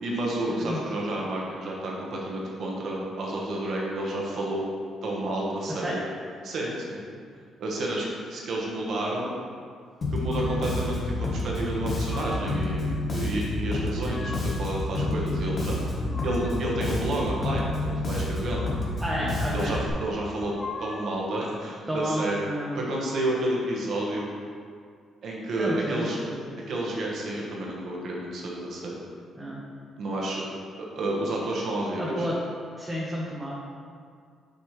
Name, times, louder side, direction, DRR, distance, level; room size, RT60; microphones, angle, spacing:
voice 1, 0.0-4.6 5.0-6.0 6.4-7.0 7.6-9.3 10.1-16.0 16.2-18.7 19.5-20.5 20.8-22.5 22.7-24.3 25.2-26.2 26.7-29.0 30.0-30.4 30.8-32.3, right 1 dB, 65° right, -3 dB, 1.4 m, -30 dB
Bass guitar, 10.0-19.9, left 2 dB, 45° left, 1.3 m, -29 dB
sound 1, 10.3-10.9 11.7-12.7 13.7-14.7 15.6-16.8 18.3-19.2 20.3-21.3, left 2 dB, 25° left, 0.6 m, -42 dB
voice 2, 15.1-15.4 15.8-16.2 19.0-19.8 21.9-22.8 25.6-26.1 26.4-26.6 29.4-29.6 32.0-32.4 32.8-33.5, equal, 15° right, -5 dB, 1.0 m, -31 dB
6.7 x 5.3 x 3.3 m, 2.1 s
cardioid pair, 90°, 0 cm